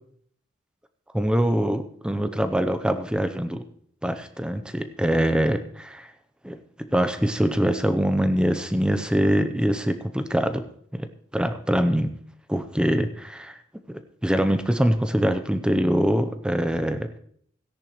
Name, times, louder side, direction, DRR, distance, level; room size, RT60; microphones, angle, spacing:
voice 1, 1.1-3.6 4.0-6.1 6.4-10.6 10.9-11.1 11.3-12.1 12.5-13.6 14.2-17.1, equal, 5° right, 9 dB, 0.6 m, -23 dB
16.5 x 10.5 x 3.1 m, 0.62 s
head